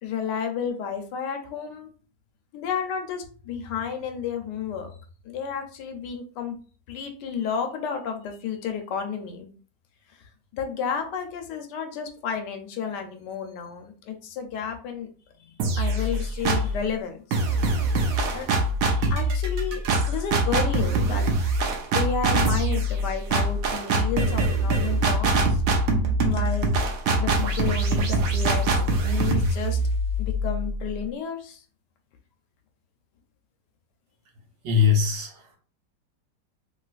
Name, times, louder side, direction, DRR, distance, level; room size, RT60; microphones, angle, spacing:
voice 1, 0.0-1.9 2.5-4.9 5.2-6.5 6.9-9.5 10.5-15.1 15.4-17.6 18.3-18.5 18.8-21.2 21.9-25.6 26.2-26.7 27.2-29.8 30.2-31.6, left 6 dB, 80° left, 5 dB, 1.2 m, -32 dB
sound 1, 15.6-16.8 17.3-31.0, right 2 dB, 70° right, 0.9 m, -24 dB
voice 2, 34.6-35.6, left 7 dB, 85° right, 2 dB, 1.4 m, -22 dB
3.0 x 2.9 x 2.4 m, 0.40 s
omnidirectional pair, 1.9 m